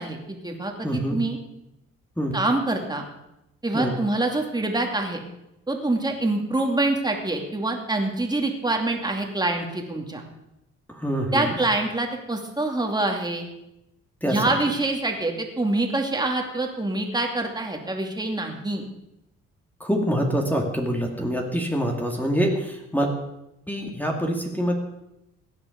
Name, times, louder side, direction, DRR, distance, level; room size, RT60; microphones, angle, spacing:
voice 1, 0.0-1.4 2.3-3.1 3.6-5.2 5.7-10.2 11.3-13.5 14.2-18.8, right 2 dB, 15° right, 2 dB, 2.7 m, -25 dB
voice 2, 0.8-1.2 2.2-2.4 3.7-3.9 10.9-11.5 14.2-14.4 19.8-23.1 23.7-24.7, equal, 5° left, 1 dB, 2.4 m, -25 dB
16.5 x 10.0 x 5.3 m, 0.86 s
cardioid pair, 90°, 30 cm